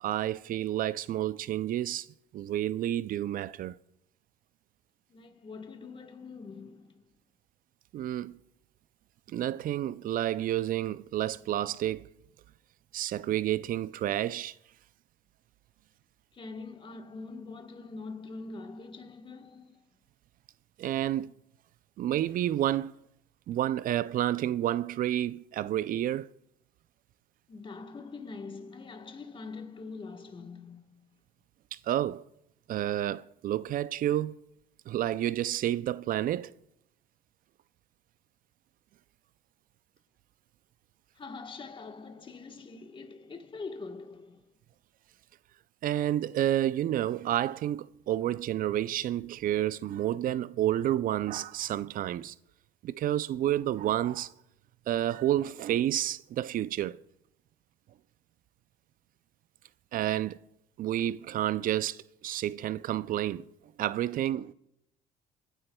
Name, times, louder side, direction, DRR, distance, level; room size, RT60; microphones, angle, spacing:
voice 1, 0.0-2.1 2.3-3.7 7.9-8.4 9.3-12.1 12.9-14.5 20.8-21.3 22.0-22.9 23.5-26.3 31.7-32.2 32.7-34.3 34.9-36.5 45.8-52.3 52.8-54.3 54.9-57.0 59.9-60.4 60.8-63.5 63.8-64.5, right 12 dB, 55° right, 0.4 m, -30 dB
voice 2, 5.1-7.1 16.3-19.8 27.5-31.2 41.1-44.5, left 4 dB, 30° left, 1.3 m, -44 dB
25.5 x 10.0 x 2.3 m
supercardioid pair, 90°, 17 cm